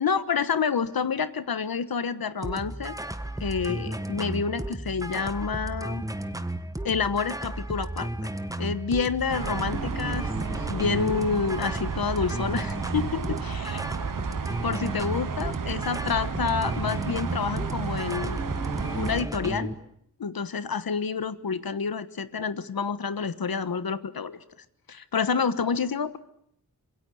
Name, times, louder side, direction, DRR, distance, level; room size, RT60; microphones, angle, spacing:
voice 1, 0.0-3.0 3.4-6.0 6.8-8.1 8.6-10.3 10.7-13.8 14.6-18.4 18.9-19.7 20.2-24.4 24.9-26.2, left 5 dB, 90° left, 13 dB, 1.3 m, -28 dB
sound 1, 2.4-19.7, right 1 dB, 10° right, 1.5 m, -34 dB
sound 2, 9.3-19.2, right 7 dB, 65° right, 1.0 m, -33 dB
26.5 x 22.0 x 8.5 m, 0.71 s
wide cardioid pair, 90°, 35 cm